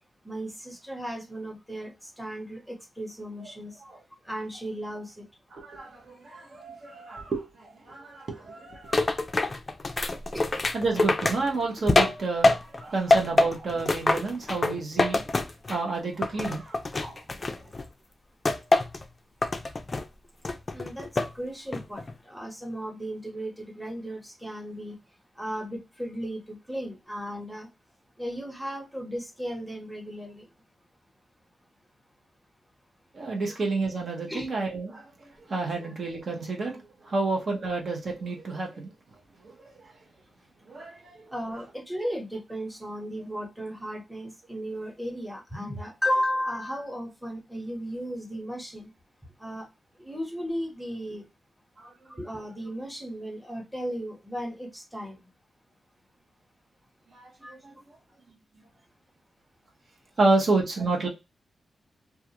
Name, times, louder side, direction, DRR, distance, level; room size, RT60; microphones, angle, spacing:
voice 1, 0.2-3.8 4.2-5.3 10.3-10.5 20.7-25.0 25.3-27.7 28.2-30.5 33.5-33.6 34.3-34.5 41.3-48.9 49.4-49.7 50.0-51.3 52.0-55.3 57.4-57.6, equal, 5° right, 1.0 m, -35 dB
voice 2, 5.5-9.1 10.7-15.2 15.7-17.2 33.1-35.1 35.5-38.9 39.4-39.9 40.7-41.2 51.8-51.9 57.1-57.7 60.2-61.1, right 3 dB, 55° right, 0.8 m, -30 dB
sound 1, 8.9-12.8 13.1-15.9 16.2-17.8 18.4-19.0 19.4-20.1 20.4-21.3 21.7-22.1, left 2 dB, 35° left, 0.3 m, -25 dB
2.3 x 2.3 x 2.8 m
cardioid pair, 90°, 0 cm